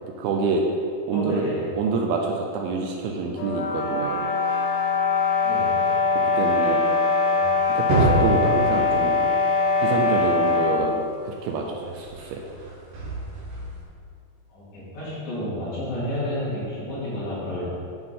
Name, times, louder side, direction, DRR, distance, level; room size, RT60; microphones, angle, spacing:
voice 1, 0.2-0.6 1.1-1.5 1.8-4.3 6.4-6.8 7.8-9.2 9.8-12.4, right 4 dB, 80° right, 1 dB, 2.4 m, -27 dB
voice 2, 1.1-1.6 5.4-5.8 7.2-7.4 14.5-17.6, left 1 dB, 50° left, -10 dB, 3.1 m, -31 dB
sound 1, 3.4-10.9, left 4 dB, 75° left, 2.7 m, -22 dB
sound 2, 7.6-10.8 11.9-13.8, right 2 dB, 65° right, 3.0 m, -27 dB
8.9 x 5.9 x 3.7 m, 2.5 s
omnidirectional pair, 4.7 m